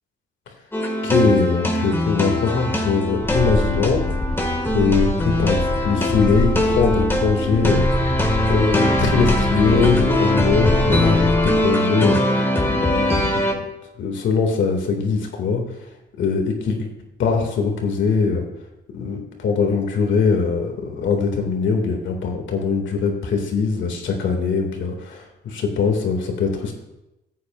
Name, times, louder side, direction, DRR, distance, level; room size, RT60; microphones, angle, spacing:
sound 1, 0.7-13.5, left 1 dB, 10° left, 1.6 m, -21 dB
voice 1, 1.0-4.1 4.7-7.9 8.5-13.6 14.0-15.6 16.2-16.9 17.2-18.4 18.9-26.7, left 5 dB, 70° left, 3 dB, 2.0 m, -21 dB
sound 2, 3.2-11.7, left 1 dB, 5° right, 2.4 m, -26 dB
15.0 x 8.5 x 2.3 m, 0.94 s
cardioid pair, 90°, 20 cm